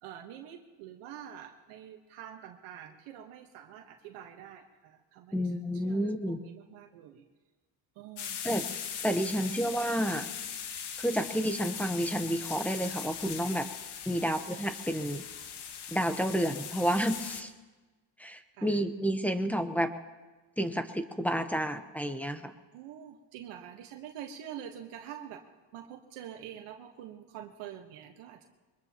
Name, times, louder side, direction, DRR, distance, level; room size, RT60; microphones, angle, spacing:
voice 1, 0.0-7.2 7.9-8.4 9.4-9.6 14.1-14.4 18.6-18.8 22.7-25.4 25.7-28.5, right 10 dB, 85° right, 2 dB, 1.4 m, -46 dB
voice 2, 5.3-6.4 8.4-8.7 9.0-10.3 11.0-13.7 14.1-15.2 15.9-17.5 18.2-19.9 20.6-22.5, equal, 5° left, 5 dB, 1.0 m, -30 dB
sound 1, 8.2-17.4, left 8 dB, 50° left, 1.4 m, -40 dB
23.0 x 21.0 x 3.0 m, 1.3 s
cardioid pair, 100°, 49 cm